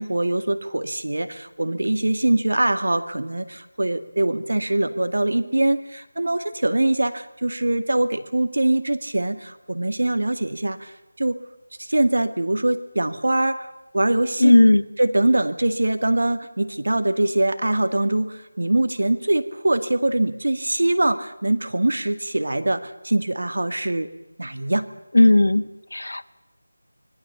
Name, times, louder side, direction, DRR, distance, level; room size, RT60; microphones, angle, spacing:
voice 1, 0.0-11.4 11.8-13.7 13.9-14.5 15.0-24.1 24.4-24.9, right 1 dB, 75° right, 10 dB, 2.0 m, -23 dB
voice 2, 14.4-14.8 25.1-26.2, left 1 dB, 80° left, 14 dB, 1.2 m, -15 dB
25.5 x 19.5 x 7.1 m, 0.97 s
figure-of-eight pair, 170°, 0 cm